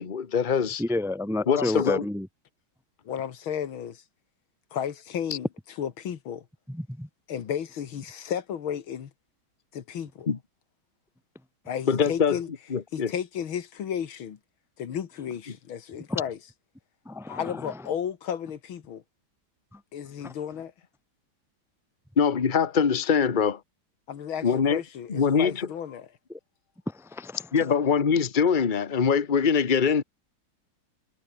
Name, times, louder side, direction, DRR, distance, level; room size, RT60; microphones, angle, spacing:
voice 1, 0.0-0.8 1.5-2.0 10.3-10.4 11.9-12.4 12.7-13.1 22.2-23.6 24.4-24.8 25.1-25.7 27.5-30.0, left 6 dB, 30° left, 1.3 m, -23 dB
voice 2, 0.8-2.3 6.7-7.1 16.1-16.2 17.0-17.7 19.7-19.8 20.2-20.3 26.9-27.4, left 2 dB, ahead, 1.0 m, -30 dB
voice 3, 1.5-1.8 3.0-4.0 4.7-5.5 5.8-6.5 7.3-9.1 9.7-10.3 11.7-12.5 12.9-14.4 14.8-16.4 17.3-19.0 19.9-20.7 24.1-26.1, left 8 dB, 85° left, 2.4 m, -33 dB
omnidirectional pair, 2.2 m